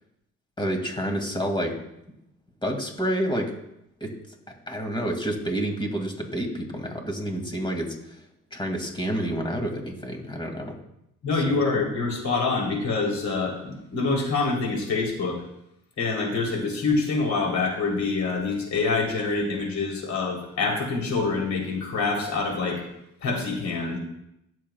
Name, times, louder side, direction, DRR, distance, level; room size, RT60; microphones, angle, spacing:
voice 1, 0.6-1.7 2.6-3.5 4.0-4.1 4.7-8.2 8.5-10.8 11.4-11.5, right 1 dB, 15° left, 3 dB, 2.3 m, -29 dB
voice 2, 11.2-15.4 16.0-22.8 23.2-24.0, left 3 dB, 65° left, 0 dB, 3.5 m, -26 dB
20.5 x 7.4 x 2.3 m, 0.80 s
cardioid pair, 90°, 30 cm